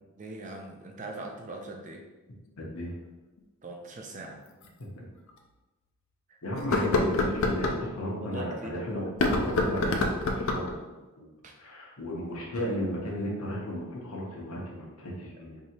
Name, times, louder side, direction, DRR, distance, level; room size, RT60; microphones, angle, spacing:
voice 1, 0.1-2.1 3.6-4.4 6.3-6.9 8.2-8.8 11.4-11.6, right 2 dB, 35° right, 1 dB, 0.5 m, -41 dB
voice 2, 2.6-2.9 4.8-5.1 6.4-10.9 11.2-11.3 11.6-15.6, equal, 80° left, -4 dB, 0.9 m, -34 dB
sound 1, 3.4-3.5 4.6-4.7 5.3-5.4 6.6-7.8 9.1-10.8, left 2 dB, 60° left, 0.4 m, -26 dB
4.7 x 2.8 x 2.8 m, 1.2 s
head